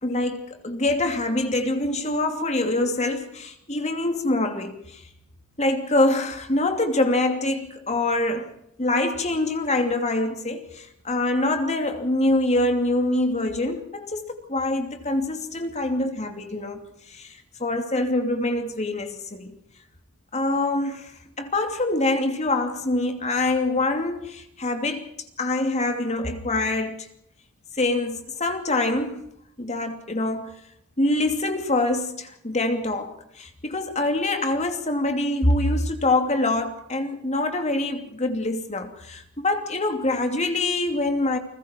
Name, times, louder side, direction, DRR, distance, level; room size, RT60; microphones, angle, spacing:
voice 1, 0.0-5.0 5.6-16.8 17.1-19.5 20.3-25.1 25.4-27.1 27.8-29.2 29.6-30.5 31.0-41.4, left 2 dB, 30° left, 2.8 m, -25 dB
30.0 x 20.5 x 4.5 m
head